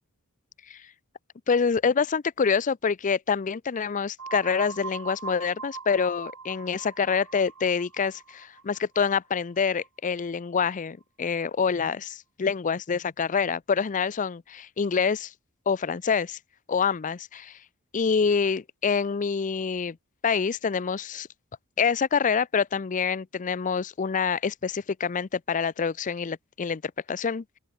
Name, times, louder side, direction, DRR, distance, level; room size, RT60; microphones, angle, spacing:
voice 1, 1.5-15.3 15.7-16.4 16.7-17.6 17.9-20.0 20.2-21.3 21.8-27.4, left 6 dB, 35° left, 0.5 m, -26 dB
sound 1, 4.2-9.9, right 5 dB, 70° right, 5.9 m, -41 dB
open air
head